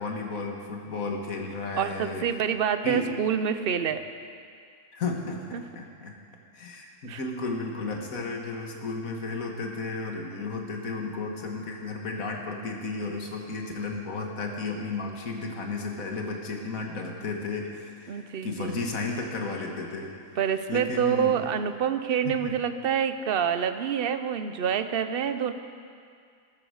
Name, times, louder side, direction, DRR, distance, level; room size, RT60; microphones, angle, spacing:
voice 1, 0.0-2.2 2.8-3.1 4.9-6.2 6.5-20.3 20.7-21.5 22.2-22.5, left 3 dB, 75° left, 1 dB, 2.1 m, -33 dB
voice 2, 1.8-4.0 5.5-5.6 7.0-7.2 18.1-18.8 20.4-25.5, right 8 dB, 50° right, 10 dB, 0.8 m, -27 dB
14.5 x 13.0 x 6.5 m, 2.2 s
omnidirectional pair, 1.5 m